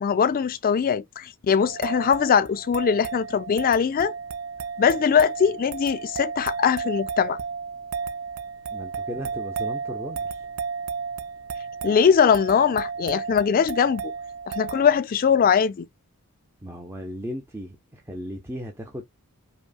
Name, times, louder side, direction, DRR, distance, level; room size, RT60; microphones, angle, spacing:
voice 1, 0.0-4.1 4.8-7.4 11.8-14.1 14.5-15.9, left 7 dB, 40° left, 0.3 m, -21 dB
sound 1, 1.6-15.0, right 5 dB, 85° right, 0.4 m, -33 dB
voice 2, 8.7-10.5 16.6-19.1, equal, 10° right, 0.5 m, -36 dB
5.2 x 2.1 x 2.3 m
head